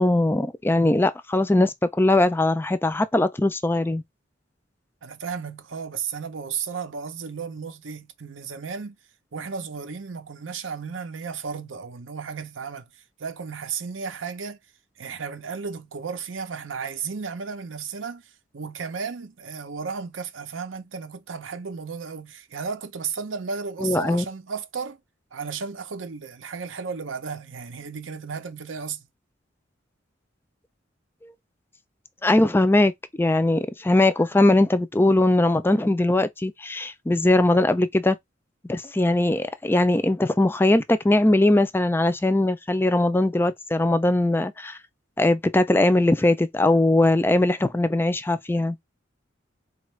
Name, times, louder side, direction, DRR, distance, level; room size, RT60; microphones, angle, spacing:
voice 1, 0.0-4.0 23.8-24.2 32.2-32.9 33.2-38.2 38.7-44.8 45.2-48.8, left 2 dB, 10° left, 0.3 m, -20 dB
voice 2, 5.0-9.0 9.3-14.6 15.0-25.0 25.3-29.0, right 5 dB, 90° right, 0.7 m, -34 dB
4.2 x 2.4 x 3.1 m
head